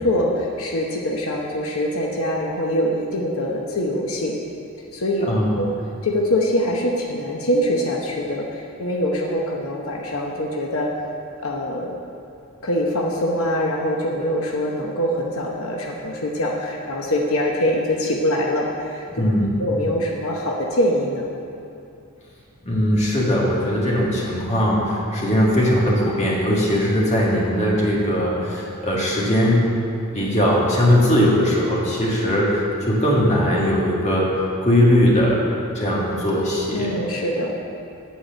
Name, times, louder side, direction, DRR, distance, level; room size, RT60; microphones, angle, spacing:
voice 1, 0.0-4.4 4.9-5.3 5.6-5.7 6.0-10.9 11.4-12.0 12.6-19.0 19.6-21.3 36.7-37.6, left 1 dB, 80° left, -1 dB, 0.9 m, -23 dB
voice 2, 19.1-19.5 22.6-29.7 30.1-35.4 35.8-36.9, equal, 30° left, -4 dB, 1.7 m, -19 dB
9.3 x 4.8 x 7.6 m, 2.5 s
head